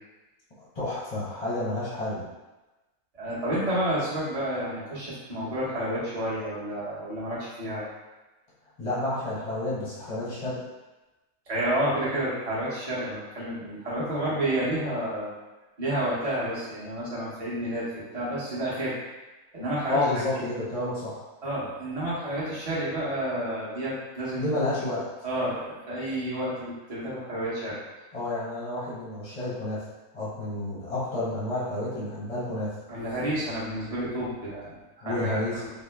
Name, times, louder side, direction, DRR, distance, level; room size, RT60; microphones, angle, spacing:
voice 1, 0.7-2.2 8.8-10.6 19.9-21.2 24.4-25.1 28.1-29.9 30.1-32.7 35.0-35.6, left 2 dB, 30° left, -8 dB, 0.8 m, -30 dB
voice 2, 3.1-7.8 11.5-15.3 15.8-17.9 18.1-19.0 19.5-20.0 20.3-20.4 21.4-24.4 25.2-27.8 32.9-35.7, right 1 dB, 30° right, -8 dB, 1.0 m, -30 dB
3.7 x 2.1 x 3.4 m, 1.1 s
omnidirectional pair, 1.5 m